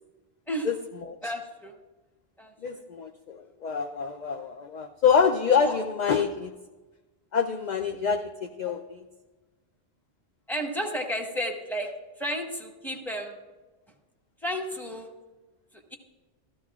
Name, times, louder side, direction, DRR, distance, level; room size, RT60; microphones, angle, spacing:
voice 1, 1.2-1.7 2.4-2.5 5.6-6.2 8.6-8.7 10.5-11.9 12.2-13.4 14.4-15.1 15.7-16.0, equal, ahead, 1 dB, 1.1 m, -32 dB
voice 2, 2.6-6.5 7.3-9.0, left 6 dB, 55° left, 6 dB, 0.5 m, -26 dB
14.0 x 13.5 x 2.4 m, 1.2 s
omnidirectional pair, 1.1 m